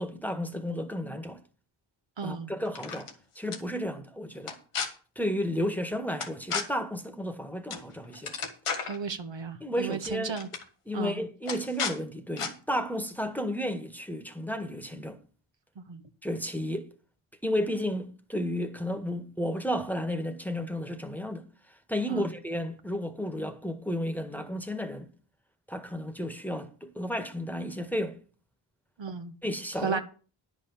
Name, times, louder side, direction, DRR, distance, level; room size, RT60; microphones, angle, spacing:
voice 1, 0.0-1.4 2.2-3.1 3.3-4.5 5.1-8.3 9.6-10.3 10.9-15.2 16.2-16.9 17.4-25.1 25.7-28.2 29.4-30.0, equal, 5° left, 1.7 m, -32 dB
voice 2, 2.2-2.5 8.9-10.5 10.9-11.2 15.7-16.0 22.1-22.3 29.0-29.3 29.8-30.0, right 6 dB, 60° right, 1.4 m, -34 dB
sound 1, 2.7-3.1 3.5-3.6 4.4-4.9 6.2-6.6 7.7-7.9 8.1-9.0 9.9-10.1 10.3-10.6 11.5-12.0 12.4-12.5, left 5 dB, 85° left, 2.0 m, -32 dB
10.0 x 6.2 x 7.3 m
cardioid pair, 45°, 50 cm